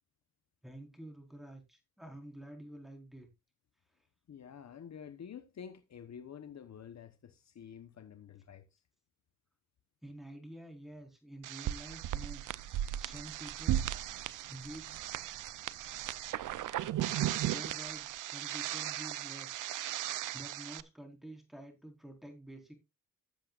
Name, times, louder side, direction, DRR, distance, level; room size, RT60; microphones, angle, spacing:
voice 1, 0.6-3.3 3.9-4.1 10.0-13.9 14.3-15.0 17.4-19.7 20.0-22.7, right 1 dB, ahead, 4.2 m, -49 dB
voice 2, 4.3-8.8, left 8 dB, 60° left, 1.0 m, -49 dB
sound 1, 11.4-20.8, right 13 dB, 85° right, 0.6 m, -36 dB
15.5 x 7.6 x 2.4 m
cardioid pair, 75°, 31 cm